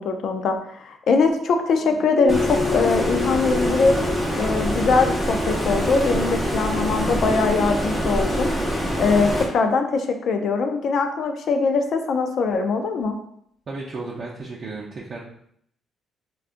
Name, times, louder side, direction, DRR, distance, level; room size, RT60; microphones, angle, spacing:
voice 1, 0.0-4.0 4.4-8.5 9.0-13.2, left 4 dB, 65° left, 6 dB, 0.4 m, -22 dB
sound 1, 1.8-7.0 7.3-7.4, left 7 dB, 90° left, 0.8 m, -31 dB
Stream, 2.3-9.5, equal, 10° left, 0.8 m, -25 dB
voice 2, 13.7-15.2, right 3 dB, 50° right, -4 dB, 0.5 m, -33 dB
3.6 x 2.3 x 2.5 m, 0.69 s
cardioid pair, 90°, 0 cm